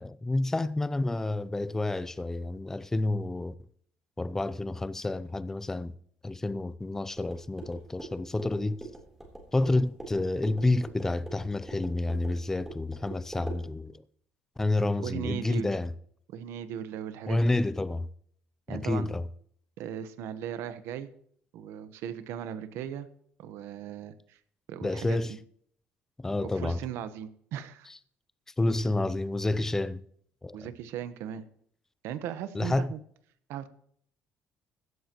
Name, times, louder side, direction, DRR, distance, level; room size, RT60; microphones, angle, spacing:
voice 1, 0.0-3.5 4.2-5.9 6.2-8.8 9.5-14.0 14.6-15.9 17.3-18.1 18.7-19.2 24.8-25.3 26.2-26.8 28.6-30.0 30.4-30.7 32.5-32.9, left 2 dB, 10° left, 0.5 m, -29 dB
sound 1, 7.1-13.6, right 2 dB, 10° right, 3.7 m, -44 dB
voice 2, 15.0-15.7 16.3-17.6 18.7-19.1 19.8-21.1 21.5-23.1 23.4-24.4 24.7-25.2 26.5-27.9 30.5-31.4 32.0-33.0 33.5-33.7, right 9 dB, 85° right, 1.2 m, -37 dB
16.0 x 13.0 x 3.1 m
cardioid pair, 160°, 4 cm